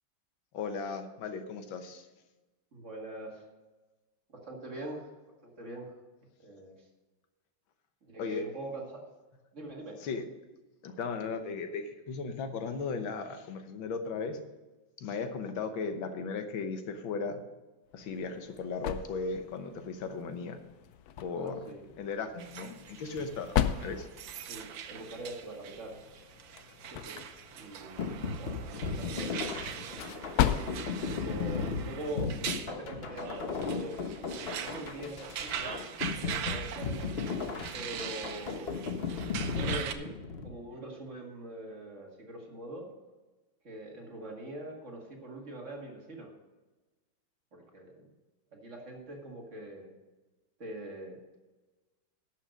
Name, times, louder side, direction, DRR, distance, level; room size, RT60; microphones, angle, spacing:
voice 1, 0.5-2.1 8.2-8.4 10.0-10.2 10.8-14.4 15.0-17.4 17.9-20.6 21.2-21.6 22.0-24.1, left 4 dB, 90° left, 8 dB, 1.8 m, -36 dB
voice 2, 2.7-3.5 4.3-5.1 5.4-5.9 6.4-6.8 8.0-9.0 9.5-10.1 21.3-21.9 24.5-26.0 26.9-27.2 27.5-29.4 29.7-30.2 31.1-32.3 32.7-34.0 34.5-35.8 36.2-37.1 37.7-38.8 39.4-40.2 40.4-42.9 43.6-46.3 47.5-48.1 48.5-49.9 50.6-51.2, right 1 dB, 40° right, 0 dB, 2.2 m, -43 dB
sound 1, 17.9-32.4, left 10 dB, 70° left, 0.9 m, -37 dB
sound 2, 22.4-39.9, right 8 dB, 85° right, 1.6 m, -42 dB
sound 3, 28.0-40.5, left 4 dB, 45° left, 0.9 m, -36 dB
11.5 x 6.4 x 6.5 m, 1.2 s
omnidirectional pair, 2.1 m